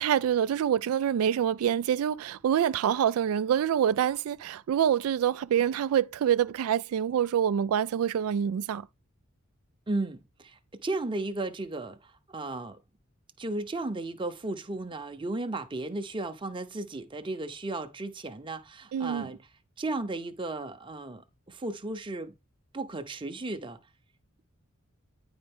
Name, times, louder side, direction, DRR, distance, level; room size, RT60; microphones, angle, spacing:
voice 1, 0.0-8.9 18.9-19.3, right 9 dB, 85° right, 0.3 m, -26 dB
voice 2, 9.9-12.8 13.4-19.4 19.8-22.3 22.7-23.8, right 2 dB, 25° right, 0.7 m, -35 dB
9.9 x 4.4 x 3.5 m
head